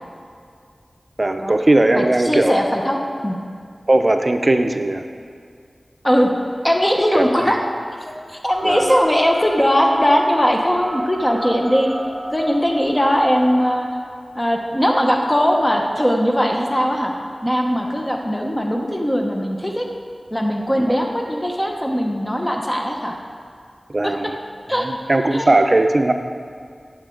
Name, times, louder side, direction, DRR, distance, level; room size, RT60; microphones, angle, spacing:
voice 1, 1.2-2.6 3.9-5.0 7.1-7.6 8.6-8.9 23.9-24.3 24.8-26.1, right 2 dB, 45° right, 6 dB, 0.6 m, -18 dB
voice 2, 1.9-3.4 6.0-6.3 6.6-7.6 8.3-11.9 12.3-13.9 14.3-17.1 17.4-19.9 20.3-23.2 24.0-24.1 24.7-24.9 25.3-25.5, equal, 20° left, 1 dB, 1.0 m, -19 dB
sound 1, 8.5-13.5, equal, 25° right, 2.1 m, -34 dB
14.5 x 7.1 x 3.9 m, 2.2 s
cardioid pair, 40°, 0 cm